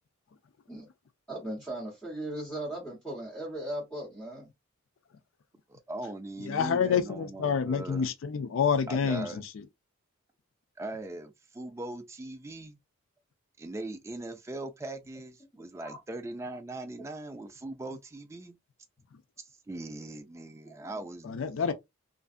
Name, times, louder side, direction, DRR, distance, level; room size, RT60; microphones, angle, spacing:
voice 1, 1.3-4.5 15.8-16.0 20.8-20.9, right 1 dB, 5° left, 1.0 m, -38 dB
voice 2, 5.7-8.1 8.9-9.4 10.8-12.8 13.6-18.6 19.4-21.3, right 2 dB, 15° right, 0.3 m, -40 dB
voice 3, 6.4-9.4 21.2-21.7, left 6 dB, 70° left, 0.4 m, -28 dB
2.5 x 2.3 x 2.4 m
head